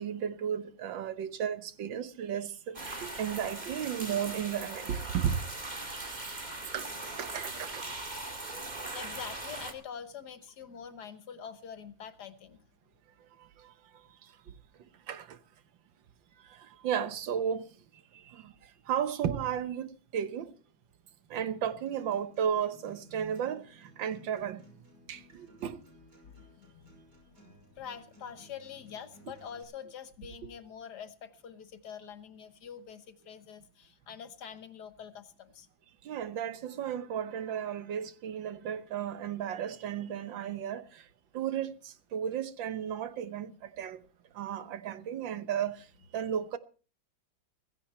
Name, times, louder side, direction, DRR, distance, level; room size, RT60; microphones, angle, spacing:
voice 1, 0.0-5.4 6.7-7.9 13.6-13.7 15.1-15.4 16.5-16.6 16.8-17.7 18.3-18.5 18.9-20.5 21.3-24.6 25.1-25.8 36.1-41.0 41.3-44.0 44.4-45.8 46.1-46.6, right 8 dB, 75° right, 1.8 m, -34 dB
sound 1, 2.7-9.7, right 2 dB, 20° right, 2.3 m, -40 dB
voice 2, 8.8-12.6 25.0-25.1 26.2-27.0 27.7-35.7, left 7 dB, 60° left, 1.6 m, -45 dB
Acoustic guitar, 21.6-29.6, equal, 60° right, 6.5 m, -59 dB
16.0 x 16.0 x 4.3 m
omnidirectional pair, 2.1 m